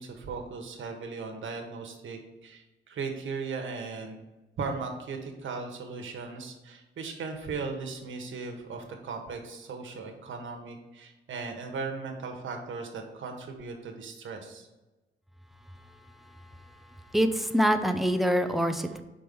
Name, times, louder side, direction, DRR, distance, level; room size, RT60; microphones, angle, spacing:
voice 1, 0.0-4.2 4.6-14.7, right 4 dB, 70° right, 3 dB, 1.3 m, -37 dB
voice 2, 17.1-19.0, equal, ahead, 7 dB, 0.6 m, -25 dB
5.3 x 4.6 x 6.2 m, 1.1 s
cardioid pair, 105°, 21 cm